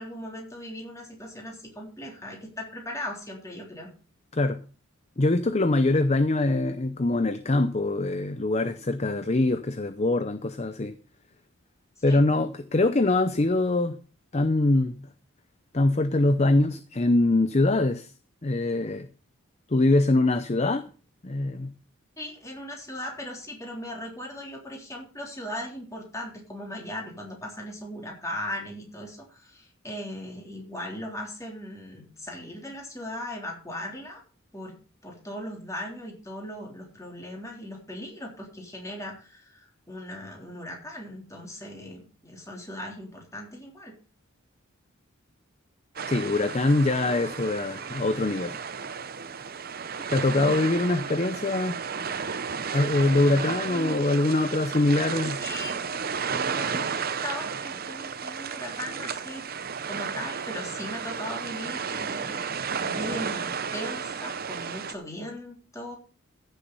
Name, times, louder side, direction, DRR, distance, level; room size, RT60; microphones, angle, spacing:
voice 1, 0.0-3.9 12.0-12.2 22.2-34.2 34.5-34.7 35.0-43.9 50.3-50.6 53.7-54.2 54.7-55.8 56.2-56.9 57.2-59.4 59.9-62.4 62.8-66.0, left 1 dB, 15° left, 3.6 m, -38 dB
voice 2, 5.2-10.9 12.0-14.0 14.3-15.0 15.7-18.1 18.4-19.1 19.7-20.9 21.2-21.7 46.1-48.6 50.1-51.8 52.7-55.4, left 2 dB, 30° left, 0.6 m, -23 dB
sound 1, 46.0-64.9, right 6 dB, 45° right, 0.7 m, -33 dB
15.0 x 7.1 x 5.4 m
head